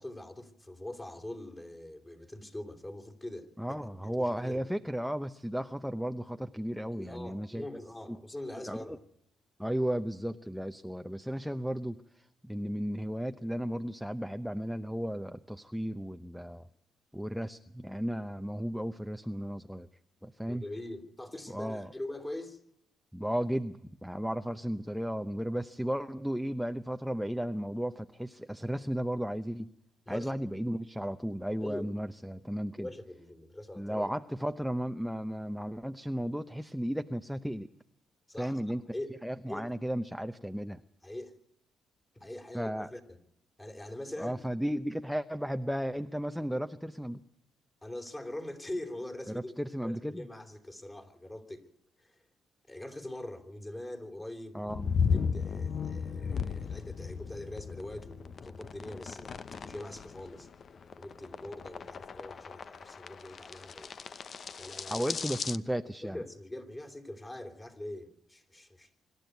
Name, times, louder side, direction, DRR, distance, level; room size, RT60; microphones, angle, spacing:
voice 1, 0.0-3.5 3.8-4.6 6.9-9.0 20.5-22.6 30.1-30.3 31.6-31.9 32.8-34.1 38.3-38.6 38.9-39.1 39.5-39.7 41.0-41.3 42.2-43.2 43.6-44.5 47.8-49.5 49.8-51.7 52.0-52.2 52.7-54.7 55.1-60.5 61.0-63.9 64.6-65.0 65.6-65.7 66.0-68.9, left 1 dB, 15° left, 3.5 m, -43 dB
voice 2, 3.6-7.7 8.7-9.0 9.6-16.7 17.1-19.9 20.2-20.6 21.5-21.9 23.1-29.7 30.1-32.9 33.8-37.7 38.4-38.8 39.2-40.8 42.5-42.9 44.2-47.2 49.3-50.3 54.5-54.9 64.9-66.2, equal, ahead, 0.7 m, -34 dB
sound 1, 54.7-65.6, left 6 dB, 50° left, 0.8 m, -36 dB
25.5 x 12.5 x 9.3 m
cardioid pair, 90°, 0 cm